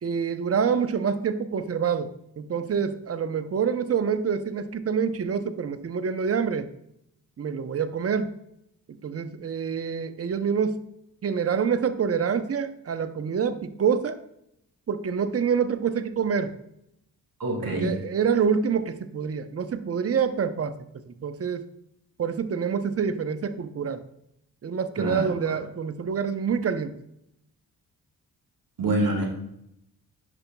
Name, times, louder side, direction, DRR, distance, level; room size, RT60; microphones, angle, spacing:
voice 1, 0.0-6.7 7.4-8.3 9.0-10.8 11.2-14.2 14.9-16.6 17.6-20.7 21.0-21.7 22.2-24.0 24.6-27.0, right 6 dB, 35° right, 11 dB, 0.7 m, -26 dB
voice 2, 17.4-18.0 25.0-25.6 28.8-29.3, right 1 dB, 60° right, 1 dB, 1.9 m, -26 dB
10.5 x 5.1 x 2.3 m, 0.79 s
supercardioid pair, 40°, 40 cm